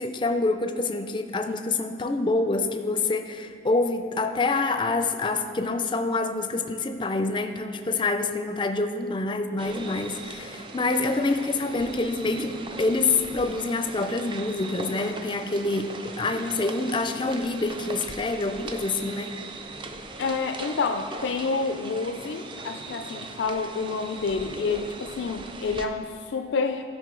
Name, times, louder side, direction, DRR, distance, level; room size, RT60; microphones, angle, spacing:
voice 1, 0.0-19.3, left 3 dB, 25° left, 7 dB, 0.4 m, -26 dB
sound 1, 9.6-25.9, right 2 dB, 30° right, 0.5 m, -39 dB
voice 2, 20.2-26.9, left 4 dB, 90° left, 7 dB, 0.4 m, -28 dB
13.0 x 5.3 x 3.7 m, 2.2 s
head